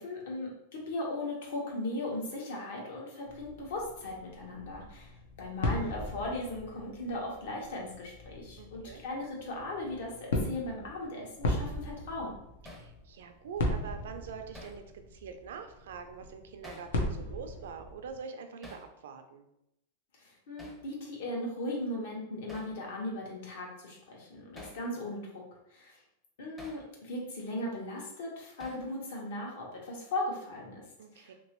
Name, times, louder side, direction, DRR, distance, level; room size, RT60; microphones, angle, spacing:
voice 1, 0.0-12.4 20.2-25.2 25.7-26.0 26.4-30.8 31.1-31.3, left 1 dB, 70° left, -2 dB, 1.2 m, -38 dB
sound 1, 3.2-18.2, left 1 dB, 90° left, 0.8 m, -38 dB
voice 2, 8.6-9.0 12.6-19.4 31.0-31.3, right 6 dB, 80° right, 6 dB, 0.5 m, -44 dB
Hammer, 12.7-12.9 14.5-14.8 16.6-16.9 18.6-18.9 20.6-20.8 22.5-22.8 24.6-24.8 26.6-26.8 28.6-28.9, left 1 dB, 10° left, 0.6 m, -49 dB
3.0 x 2.9 x 3.0 m, 0.83 s
supercardioid pair, 155°, 0 cm